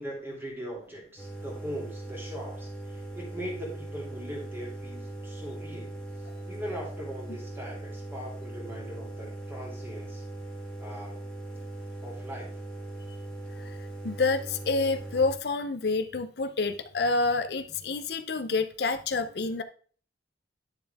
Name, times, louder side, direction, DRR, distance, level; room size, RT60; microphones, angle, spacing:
voice 1, 0.0-6.0 6.5-10.2 10.8-11.2 12.0-12.5, equal, 15° right, -2 dB, 3.1 m, -40 dB
sound 1, 1.2-15.3, right 1 dB, 5° left, 1.8 m, -40 dB
voice 2, 14.0-19.6, left 3 dB, 60° left, 10 dB, 0.6 m, -28 dB
9.9 x 6.9 x 3.4 m, 0.44 s
head